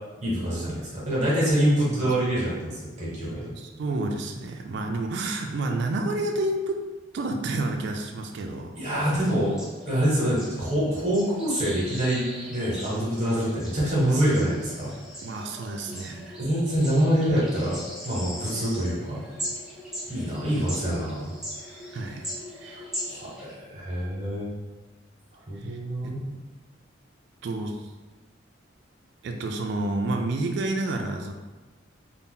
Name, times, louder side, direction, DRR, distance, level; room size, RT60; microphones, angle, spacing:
voice 1, 0.2-3.5 8.8-12.2 12.5-14.9 16.4-17.8 18.0-19.2 20.1-21.3 22.7-24.5 25.5-26.4, equal, 35° right, -6 dB, 0.9 m, -25 dB
voice 2, 3.6-6.8 7.1-8.7 15.2-16.4 21.9-22.3 22.5-22.8 25.6-25.8 26.0-26.1 27.4-27.9 29.2-31.3, right 2 dB, 60° right, 3 dB, 0.3 m, -30 dB
sound 1, 9.2-23.5, equal, 5° right, 0.5 m, -40 dB
2.7 x 2.1 x 3.6 m, 1.2 s
head